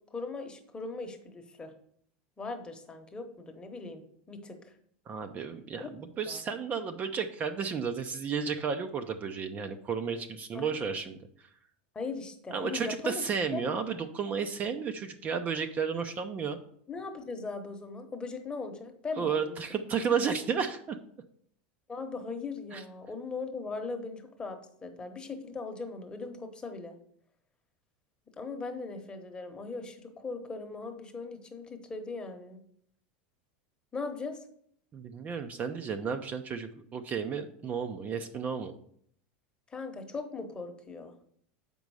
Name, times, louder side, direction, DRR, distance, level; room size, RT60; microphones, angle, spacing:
voice 1, 0.1-1.7 2.4-4.7 5.8-5.9 6.2-6.4 10.5-10.8 11.9-13.3 13.5-13.6 16.9-19.6 21.9-27.0 28.4-32.6 33.9-34.4 39.7-41.1, left 3 dB, 15° left, 5 dB, 1.1 m, -39 dB
voice 2, 5.1-11.2 12.5-16.6 19.1-21.0 22.7-22.8 34.9-38.7, right 6 dB, 30° right, 7 dB, 0.6 m, -33 dB
7.3 x 5.3 x 4.8 m, 0.65 s
supercardioid pair, 130°, 5 cm